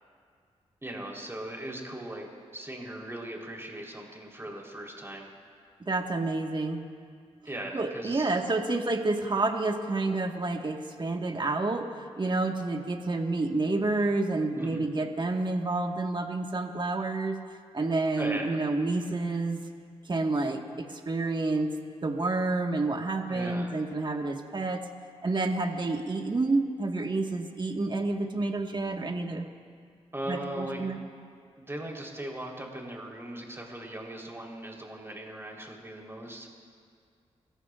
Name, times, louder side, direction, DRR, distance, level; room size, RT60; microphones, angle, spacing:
voice 1, 0.8-5.3 7.5-8.3 14.5-14.9 18.2-18.6 23.3-23.7 30.1-30.9 31.6-36.5, right 1 dB, 20° right, -1 dB, 3.8 m, -39 dB
voice 2, 5.8-6.8 7.7-11.9 12.2-17.4 17.7-19.6 20.1-21.7 22.0-24.8 25.2-29.5 30.3-31.0, right 2 dB, 40° right, 3 dB, 1.6 m, -29 dB
30.0 x 14.5 x 2.5 m, 2.1 s
cardioid pair, 55°, 12 cm